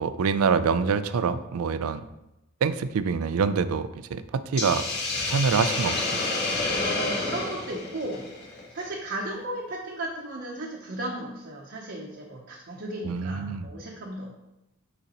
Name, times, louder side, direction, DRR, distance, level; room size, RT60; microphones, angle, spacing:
voice 1, 0.0-2.0 2.6-4.9 5.1-6.2 13.0-13.7, right 5 dB, 85° right, 13 dB, 0.4 m, -26 dB
Hiss, 4.6-8.8, left 3 dB, 60° left, 1.9 m, -29 dB
voice 2, 6.8-14.4, right 1 dB, 55° right, -2 dB, 0.8 m, -35 dB
6.8 x 5.1 x 3.0 m, 0.89 s
head